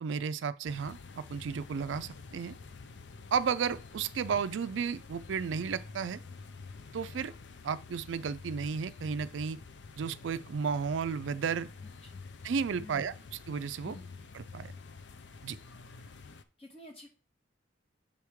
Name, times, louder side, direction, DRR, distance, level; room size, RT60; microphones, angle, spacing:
voice 1, 0.0-2.6 3.3-6.2 6.9-7.3 7.6-9.6 10.0-11.7 12.4-13.1 13.5-14.0 14.3-14.7 15.4-15.6, right 6 dB, 75° right, 0.4 m, -33 dB
sound 1, 0.6-16.4, left 4 dB, 65° left, 0.5 m, -48 dB
voice 2, 11.8-12.2 12.8-13.1 13.8-14.2 15.9-16.2 16.6-17.1, left 1 dB, 30° left, 1.5 m, -51 dB
7.3 x 3.5 x 4.6 m
head